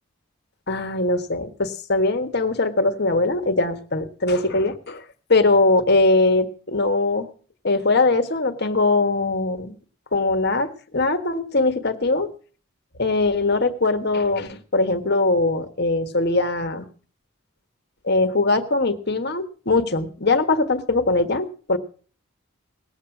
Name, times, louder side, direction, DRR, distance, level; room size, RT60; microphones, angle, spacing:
voice 1, 0.7-5.0 5.3-7.3 7.6-9.8 10.1-12.3 13.0-16.9 18.0-21.8, left 2 dB, 50° left, 9 dB, 1.4 m, -21 dB
19.0 x 8.1 x 6.0 m, 0.41 s
head